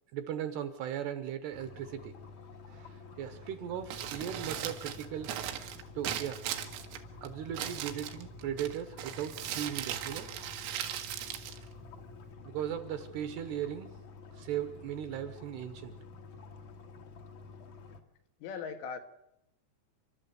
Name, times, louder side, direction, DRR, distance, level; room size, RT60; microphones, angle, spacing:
voice 1, 0.1-2.1 2.7-5.6 6.0-6.5 7.2-10.3 12.4-13.9 14.3-16.0, right 10 dB, 75° right, 10 dB, 2.7 m, -38 dB
sound 1, 1.5-18.0, left 4 dB, 60° left, 2.1 m, -50 dB
Crumpling crinkling, 3.8-12.3, right 10 dB, 90° right, 4.0 m, -39 dB
voice 2, 18.4-19.0, left 6 dB, 85° left, 6 dB, 4.2 m, -39 dB
29.5 x 12.0 x 8.3 m, 0.84 s
omnidirectional pair, 5.6 m